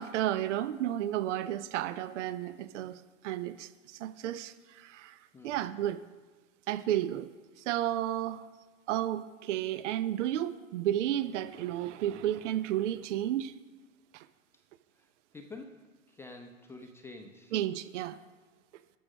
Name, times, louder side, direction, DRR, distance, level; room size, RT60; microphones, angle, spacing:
voice 1, 0.0-5.2 5.4-6.0 6.7-7.3 7.7-8.5 8.9-13.5 14.1-14.3 17.5-18.2, right 12 dB, 65° right, 13 dB, 0.7 m, -32 dB
voice 2, 15.3-15.8 16.1-17.5, left 3 dB, 5° left, 3 dB, 0.6 m, -48 dB
13.0 x 6.4 x 6.2 m, 1.4 s
hypercardioid pair, 135°, 40 cm